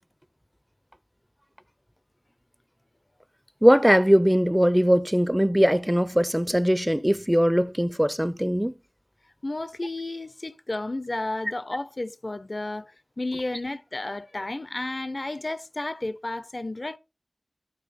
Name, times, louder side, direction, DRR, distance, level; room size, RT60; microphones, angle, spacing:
voice 1, 3.6-8.7, equal, 10° right, 0.4 m, -20 dB
voice 2, 9.4-17.0, left 2 dB, 50° left, 0.4 m, -32 dB
13.0 x 4.5 x 4.0 m
wide cardioid pair, 40°, 0 cm